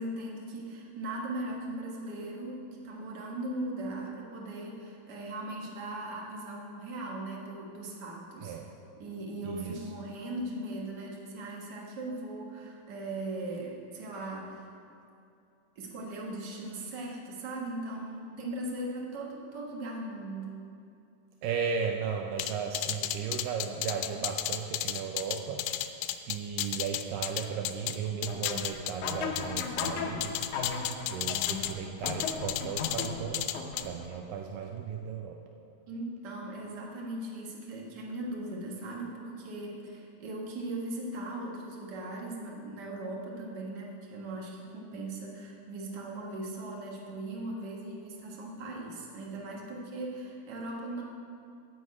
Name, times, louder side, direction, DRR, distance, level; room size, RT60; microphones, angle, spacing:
voice 1, 0.0-8.6 9.0-14.7 15.7-20.6 35.9-51.0, right 1 dB, 50° right, -2 dB, 1.2 m, -39 dB
voice 2, 8.4-8.8 9.4-9.9 21.4-33.5 33.8-35.4, right 7 dB, 80° right, 2 dB, 2.2 m, -36 dB
sound 1, 22.4-28.0 28.2-29.9 30.2-31.7 32.1-33.1 33.3-33.8, left 13 dB, 90° left, 2.3 m, -33 dB
sound 2, 28.3-34.2, left 5 dB, 70° left, 2.1 m, -37 dB
9.4 x 6.4 x 8.3 m, 2.5 s
omnidirectional pair, 4.0 m